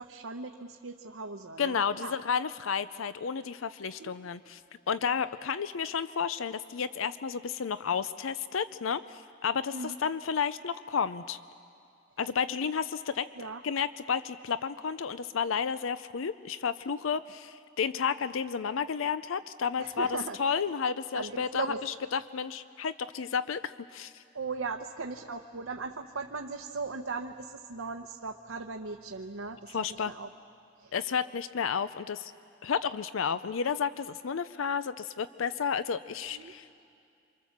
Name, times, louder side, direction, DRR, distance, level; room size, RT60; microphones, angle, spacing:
voice 1, 0.0-2.1 4.0-4.1 9.7-10.0 13.4-13.6 19.8-20.4 21.1-21.8 24.3-29.8 30.1-30.3 30.8-30.9 36.3-36.5, right 4 dB, 85° right, 3 dB, 0.9 m, -38 dB
voice 2, 1.6-4.6 4.9-11.4 12.2-13.3 13.6-24.2 29.7-30.1 30.9-32.3 32.6-36.9, left 6 dB, 75° left, 14 dB, 0.5 m, -32 dB
28.0 x 25.0 x 7.3 m, 2.4 s
head